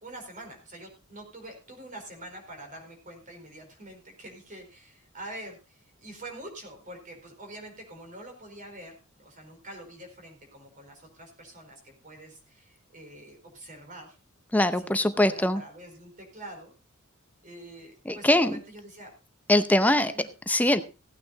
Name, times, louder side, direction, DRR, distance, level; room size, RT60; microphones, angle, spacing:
voice 1, 0.0-14.2 14.8-16.7 17.4-19.1 19.8-20.3, right 1 dB, 40° right, 3 dB, 4.6 m, -45 dB
voice 2, 14.5-15.6 18.1-18.6 19.5-20.1 20.5-20.8, left 1 dB, 5° left, 10 dB, 0.7 m, -22 dB
16.5 x 9.3 x 4.0 m, 0.31 s
head